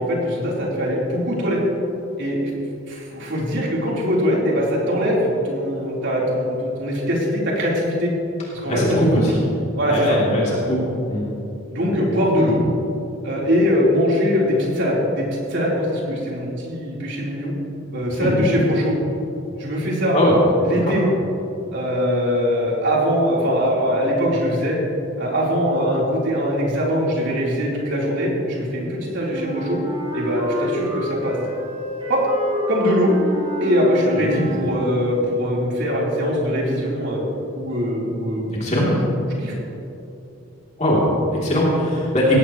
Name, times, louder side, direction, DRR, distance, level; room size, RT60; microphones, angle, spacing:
voice 1, 0.0-1.6 2.2-2.5 2.9-8.1 8.6-8.8 9.1-9.2 9.7-10.2 11.7-12.6 13.2-17.5 17.9-19.0 19.6-20.2 20.6-21.1 21.7-24.8 25.2-29.8 30.1-31.4 32.1-32.2 32.7-33.1 33.6-37.2 37.5-38.8 39.4-39.5, equal, 60° right, -4 dB, 4.0 m, -22 dB
voice 2, 8.7-9.3 9.9-10.8 11.1-11.3 12.3-12.6 18.1-18.3 20.1-20.3 20.8-20.9 34.2-34.5 38.6-38.9 40.8-42.4, equal, 35° left, -6 dB, 3.2 m, -20 dB
Wind instrument woodwind instrument, 29.3-35.1, right 1 dB, 25° right, 3.5 m, -29 dB
19.0 x 16.5 x 3.2 m, 2.8 s
head